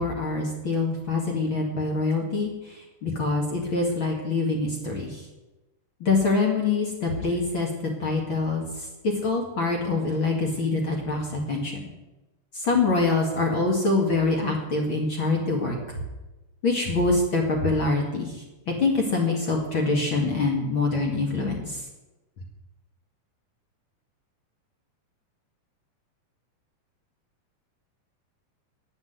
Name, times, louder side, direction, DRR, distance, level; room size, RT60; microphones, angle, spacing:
voice 1, 0.0-2.5 3.0-5.1 6.0-7.7 8.0-8.6 9.2-11.7 12.6-15.8 16.6-18.3 18.8-21.5, left 3 dB, 40° left, 0 dB, 2.3 m, -24 dB
10.0 x 8.9 x 9.4 m, 1.1 s
omnidirectional pair, 3.8 m